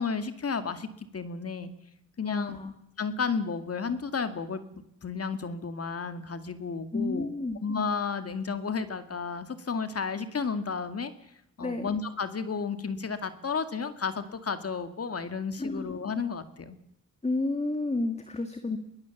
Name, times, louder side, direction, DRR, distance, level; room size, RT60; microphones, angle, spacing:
voice 1, 0.0-1.7 2.2-2.6 3.0-4.6 5.0-7.3 7.6-11.1 11.6-16.8, left 5 dB, 45° left, 10 dB, 2.1 m, -32 dB
voice 2, 2.3-2.7 6.9-7.6 11.6-11.9 15.6-15.9 17.2-18.8, left 2 dB, 20° left, 7 dB, 2.1 m, -31 dB
22.5 x 18.0 x 7.2 m, 0.77 s
cardioid pair, 85°, 32 cm